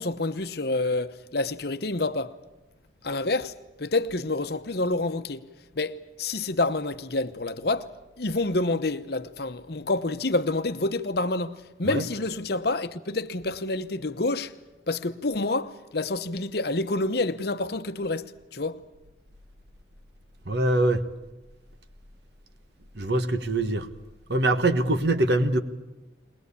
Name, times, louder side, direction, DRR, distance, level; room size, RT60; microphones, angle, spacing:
voice 1, 0.0-2.3 3.0-3.5 3.8-5.4 5.7-7.9 8.2-14.5 14.9-18.8, left 2 dB, 55° left, 0.9 m, -28 dB
voice 2, 20.5-21.0 22.9-23.9 24.3-25.6, right 2 dB, 60° right, 1.3 m, -23 dB
21.5 x 20.0 x 8.4 m
head